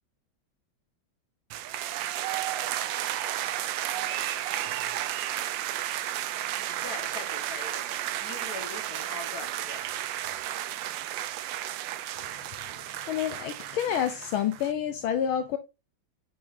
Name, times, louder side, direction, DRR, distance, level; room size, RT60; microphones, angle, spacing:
sound 1, 1.5-14.7, right 12 dB, 75° right, 1.2 m, -33 dB
voice 1, 6.8-10.0, left 4 dB, 50° left, 1.8 m, -42 dB
voice 2, 12.9-15.6, left 9 dB, 80° left, 1.5 m, -29 dB
7.8 x 5.4 x 2.6 m
omnidirectional pair, 2.3 m